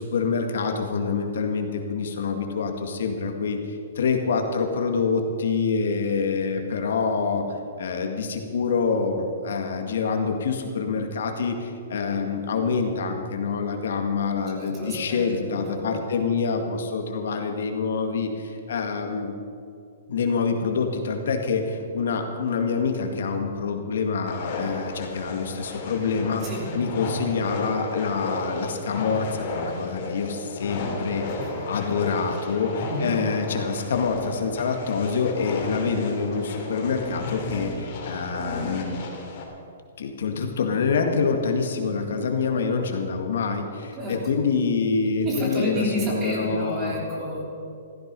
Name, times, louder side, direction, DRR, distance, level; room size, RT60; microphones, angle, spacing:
voice 1, 0.0-19.3 20.1-26.4 26.7-39.0 40.0-46.9, left 5 dB, 75° left, 4 dB, 2.1 m, -26 dB
voice 2, 14.6-15.9 26.4-26.6 31.4-31.6 32.8-33.2 44.0-44.1 45.3-47.4, equal, 20° right, -3 dB, 3.4 m, -30 dB
sound 1, 24.3-39.4, left 3 dB, 40° left, 3.2 m, -33 dB
15.5 x 14.0 x 5.5 m, 2.5 s
hypercardioid pair, 165°, 0 cm